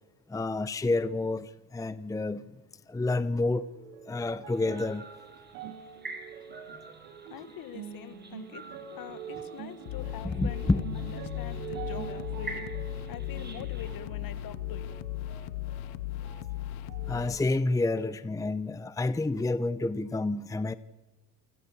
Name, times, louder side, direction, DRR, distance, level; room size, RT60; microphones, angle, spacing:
voice 1, 0.3-2.6 2.9-3.6 4.1-5.3 5.6-5.7 10.2-10.8 17.1-20.7, left 2 dB, 10° left, 0.7 m, -29 dB
sound 1, 3.1-16.6 16.9-17.8 18.5-18.6, right 7 dB, 80° right, 4.1 m, -45 dB
sound 2, 4.5-14.0, right 3 dB, 25° right, 4.9 m, -48 dB
voice 2, 7.3-8.6 9.0-12.7 13.1-14.9, left 10 dB, 55° left, 1.8 m, -44 dB
sound 3, 9.9-17.4, left 13 dB, 80° left, 0.8 m, -37 dB
27.5 x 16.5 x 7.3 m
supercardioid pair, 85°, 41 cm